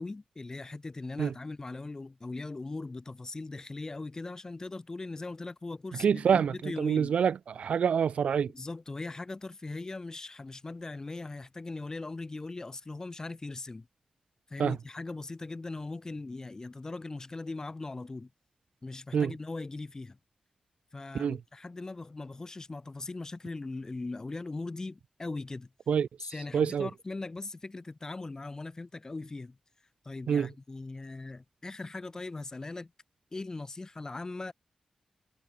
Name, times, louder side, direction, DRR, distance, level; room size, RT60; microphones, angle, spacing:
voice 1, 0.0-7.1 8.5-13.9 14.5-18.3 18.8-20.2 20.9-25.7 26.2-29.6 30.0-32.9 33.3-34.5, left 3 dB, 30° left, 3.0 m, -40 dB
voice 2, 6.0-8.5 14.6-14.7 19.1-19.3 21.1-21.4 25.9-26.1 26.5-26.9 30.3-30.5, right 7 dB, 90° right, 1.4 m, -26 dB
wide cardioid pair, 95°, 2 cm